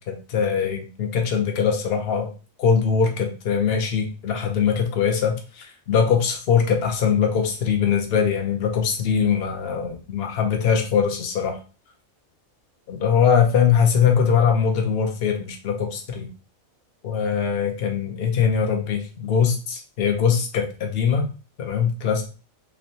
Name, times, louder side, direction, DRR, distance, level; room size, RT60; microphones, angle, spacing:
voice 1, 0.1-2.3 2.6-11.6 12.9-16.3 17.0-21.3 21.6-22.2, left 7 dB, 55° left, 3 dB, 0.8 m, -22 dB
3.1 x 3.0 x 2.7 m, 0.35 s
omnidirectional pair, 1.4 m